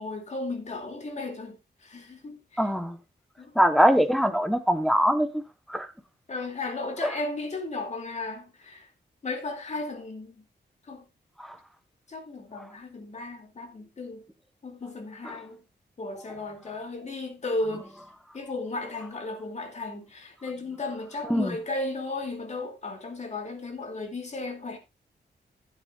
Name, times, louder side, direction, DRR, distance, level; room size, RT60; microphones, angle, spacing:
voice 1, 0.0-2.6 3.4-3.5 6.3-8.9 9.2-10.3 10.9-11.0 12.1-14.2 14.6-15.6 16.0-17.9 18.3-24.8, left 2 dB, 40° left, 2.5 m, -35 dB
voice 2, 2.6-3.0 3.6-5.4 5.7-5.9 7.0-7.1 21.3-21.5, equal, ahead, 1.0 m, -22 dB
15.0 x 9.3 x 2.4 m
wide cardioid pair, 165°, 18 cm